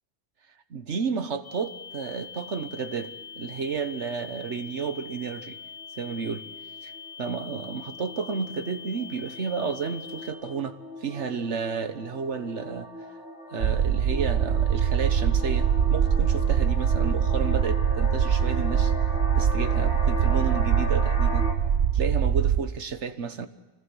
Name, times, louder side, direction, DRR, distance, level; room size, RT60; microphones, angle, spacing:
voice 1, 0.7-5.6 6.0-6.5 6.8-6.9 7.2-12.9 13.5-18.9 19.3-21.5 21.9-23.5, right 5 dB, 85° right, 1.6 m, -32 dB
sound 1, 1.4-10.3, left 6 dB, 25° left, 6.9 m, -43 dB
sound 2, 3.2-3.7 4.2-4.4 4.7-4.9 5.2-21.5, left 2 dB, 70° left, 4.0 m, -38 dB
sound 3, 13.6-22.6, right 8 dB, 70° right, 1.1 m, -23 dB
25.0 x 18.5 x 6.3 m
omnidirectional pair, 1.2 m